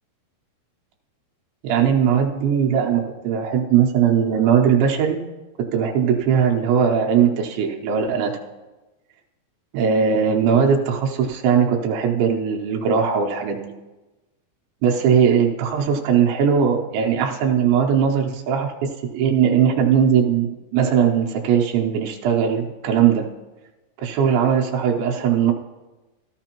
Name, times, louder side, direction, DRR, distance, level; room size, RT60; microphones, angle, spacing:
voice 1, 1.6-5.2 5.7-8.3 9.7-13.7 14.8-23.3 24.0-25.5, right 7 dB, 80° right, 1 dB, 3.1 m, -19 dB
14.0 x 13.0 x 3.0 m, 1.1 s
omnidirectional pair, 5.3 m